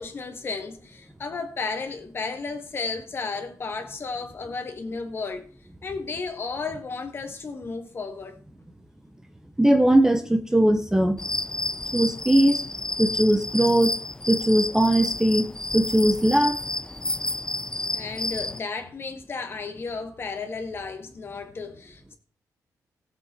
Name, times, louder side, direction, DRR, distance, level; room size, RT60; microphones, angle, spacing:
voice 1, 0.0-5.5 5.8-8.4 17.8-22.2, left 4 dB, 35° left, 1.8 m, -33 dB
voice 2, 9.6-11.2 11.9-12.6 13.0-13.9 14.3-16.6, right 1 dB, 10° right, 0.9 m, -20 dB
sound 1, 11.2-18.6, left 2 dB, 10° left, 0.4 m, -30 dB
18.0 x 7.6 x 4.4 m
wide cardioid pair, 155°, 7 cm